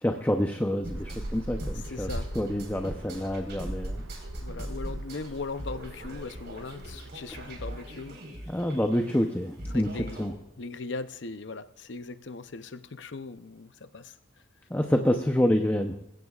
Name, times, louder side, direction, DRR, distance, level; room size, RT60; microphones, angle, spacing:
voice 1, 0.0-2.1 2.3-4.0 8.5-9.9 10.2-10.3 14.7-16.0, left 1 dB, 10° left, 4 dB, 0.7 m, -27 dB
sound 1, 0.8-10.3, right 1 dB, 55° right, 4.4 m, -41 dB
sound 2, 0.9-7.8, right 1 dB, 75° right, 1.1 m, -41 dB
voice 2, 1.7-2.3 4.4-8.2 9.7-10.2 10.6-14.1, left 3 dB, 60° left, 11 dB, 0.7 m, -39 dB
sound 3, 2.1-3.5, equal, 35° right, 6.1 m, -41 dB
20.0 x 16.5 x 2.4 m, 0.87 s
head